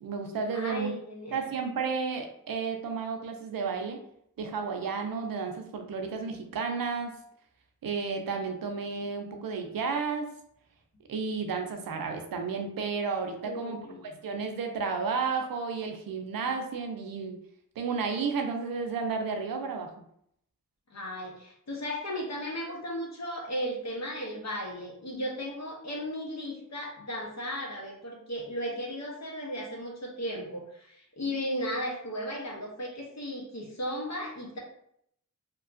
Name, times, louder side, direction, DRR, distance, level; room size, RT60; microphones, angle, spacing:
voice 1, 0.0-0.9 1.3-4.0 4.4-7.1 7.8-10.3 11.1-17.4 17.8-19.9, right 5 dB, 85° right, 4 dB, 0.5 m, -32 dB
voice 2, 0.5-1.5 13.4-14.1 20.9-34.6, equal, 50° left, -1 dB, 0.9 m, -35 dB
2.7 x 2.3 x 2.5 m, 0.71 s
cardioid pair, 40°, 34 cm